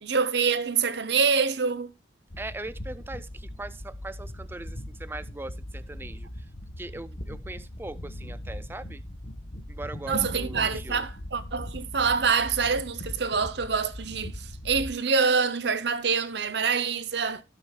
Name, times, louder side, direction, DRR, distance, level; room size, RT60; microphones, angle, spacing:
voice 1, 0.0-1.9 10.1-17.4, right 5 dB, 60° right, 0.7 m, -26 dB
sound 1, 2.3-14.9, equal, 50° left, 1.2 m, -39 dB
voice 2, 2.4-6.5 6.8-9.0 9.7-11.0, right 2 dB, 10° right, 0.4 m, -40 dB
16.5 x 6.3 x 2.2 m
head